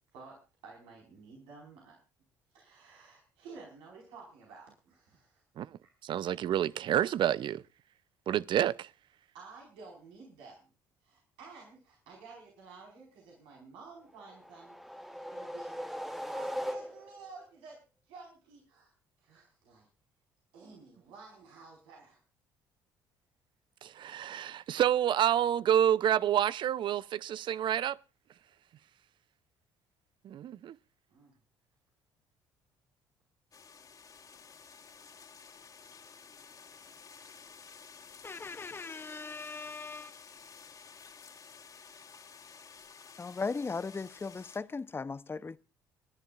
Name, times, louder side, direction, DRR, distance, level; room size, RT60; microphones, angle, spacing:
voice 1, 0.6-2.0 2.5-5.4 9.3-10.7 11.0-14.8 15.1-17.8 18.0-18.9 19.2-19.9 20.5-22.2 31.1-31.3, right 4 dB, 75° right, 4.8 m, -52 dB
voice 2, 6.0-7.6 8.3-8.9 23.8-28.0 30.2-30.8, right 10 dB, 55° right, 0.6 m, -28 dB
sound 1, 14.2-17.3, equal, ahead, 1.3 m, -39 dB
sound 2, 33.5-44.6, left 6 dB, 40° left, 2.6 m, -53 dB
voice 3, 38.2-40.1 43.2-45.6, left 4 dB, 25° left, 0.8 m, -38 dB
29.5 x 11.0 x 2.5 m
hypercardioid pair, 65°, 10 cm